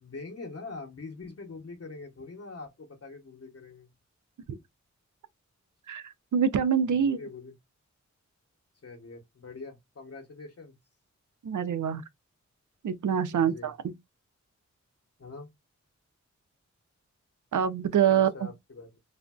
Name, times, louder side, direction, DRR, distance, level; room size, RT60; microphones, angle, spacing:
voice 1, 0.0-3.9 4.5-4.6 7.0-7.5 8.8-10.7 13.3-13.7 15.2-15.5 18.1-19.0, left 3 dB, 55° left, 0.8 m, -44 dB
voice 2, 5.9-7.2 11.4-12.0 12.8-13.9 17.5-18.5, right 8 dB, 90° right, 0.5 m, -25 dB
3.3 x 2.5 x 2.3 m
wide cardioid pair, 65°, 30 cm